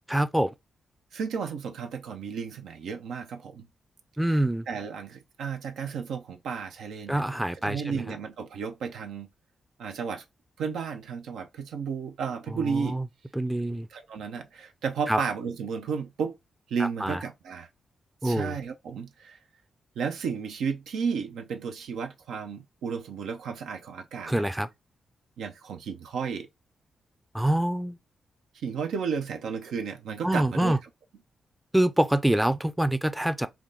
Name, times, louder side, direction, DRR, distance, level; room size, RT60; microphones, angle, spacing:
voice 1, 0.1-0.5 4.2-4.6 7.1-8.0 12.5-13.0 13.4-13.9 15.1-15.2 17.0-17.2 18.2-18.5 24.3-24.7 27.3-28.0 30.2-30.8 31.7-33.5, right 1 dB, 5° right, 0.4 m, -25 dB
voice 2, 1.1-3.7 4.3-7.2 7.6-9.3 9.8-10.2 10.6-13.0 13.6-13.7 13.9-16.4 16.7-17.7 18.2-19.4 20.0-24.5 25.4-26.5 28.6-30.8, right 6 dB, 85° right, 0.5 m, -33 dB
3.5 x 2.2 x 3.8 m
supercardioid pair, 55°, 0 cm